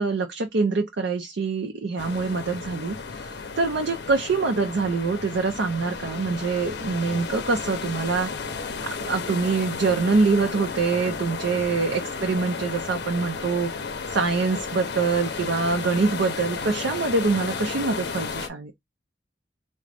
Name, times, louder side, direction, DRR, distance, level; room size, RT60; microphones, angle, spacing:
voice 1, 0.0-3.3 3.6-8.3 8.8-13.7 14.1-18.7, right 4 dB, 80° right, 0.5 m, -25 dB
sound 1, 2.0-18.5, left 5 dB, 65° left, 0.6 m, -33 dB
3.7 x 2.1 x 3.3 m
head